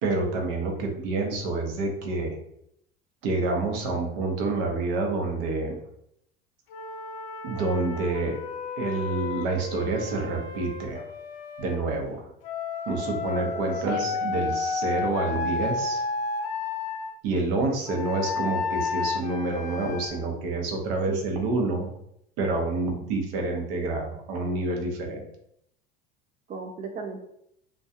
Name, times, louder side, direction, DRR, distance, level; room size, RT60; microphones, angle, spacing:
voice 1, 0.0-2.4 3.2-5.8 7.4-8.3 8.8-11.0 11.6-12.3 12.9-16.0 17.2-21.9 22.4-25.2, right 2 dB, 75° right, 2 dB, 0.8 m, -28 dB
voice 2, 0.8-1.1 13.7-14.3 21.1-21.2 26.5-27.2, right 4 dB, 30° right, 2 dB, 0.4 m, -36 dB
Wind instrument woodwind instrument, 6.7-11.8 12.4-17.1 17.9-20.1, left 4 dB, 70° left, 0.5 m, -32 dB
2.3 x 2.3 x 2.7 m, 0.75 s
hypercardioid pair, 85°, 29 cm